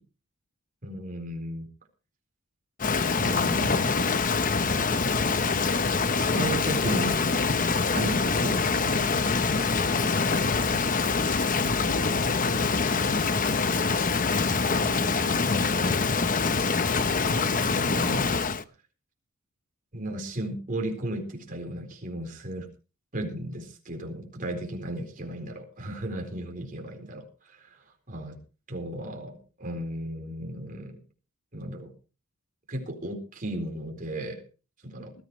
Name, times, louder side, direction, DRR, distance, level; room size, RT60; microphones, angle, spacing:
voice 1, 0.8-1.7 3.2-4.2 6.1-7.3 7.9-9.3 14.7-16.0 17.6-18.3 19.9-22.7 23.1-28.4 28.7-31.0 31.5-31.9 32.7-34.4 34.8-35.1, right 1 dB, 40° right, 2 dB, 4.2 m, -35 dB
Rain, 2.8-18.6, left 4 dB, 40° left, 0.9 m, -25 dB
sound 1, 4.4-10.9, equal, 5° left, 0.8 m, -43 dB
voice 2, 34.8-35.1, left 2 dB, 85° left, 7 dB, 2.2 m, -44 dB
20.5 x 14.5 x 3.1 m, 0.34 s
head